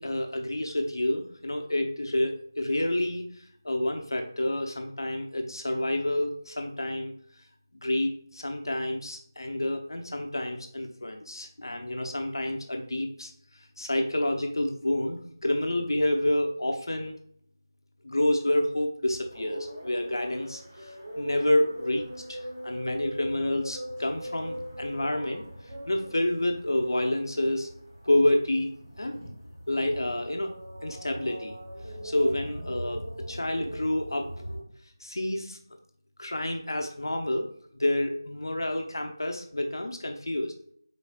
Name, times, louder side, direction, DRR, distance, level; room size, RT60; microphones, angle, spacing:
voice 1, 0.0-3.3 3.6-7.1 7.7-13.3 13.8-17.2 18.0-22.4 22.6-25.4 25.9-27.7 28.1-28.7 29.0-29.2 29.7-30.5 30.8-31.6 32.0-33.0 33.3-34.3 35.0-35.6 36.2-37.5 37.8-40.5, left 1 dB, 70° left, 4 dB, 0.7 m, -28 dB
sound 1, 19.0-34.6, equal, 30° right, 1.7 m, -41 dB
5.2 x 4.1 x 2.3 m, 0.63 s
figure-of-eight pair, 175°, 2 cm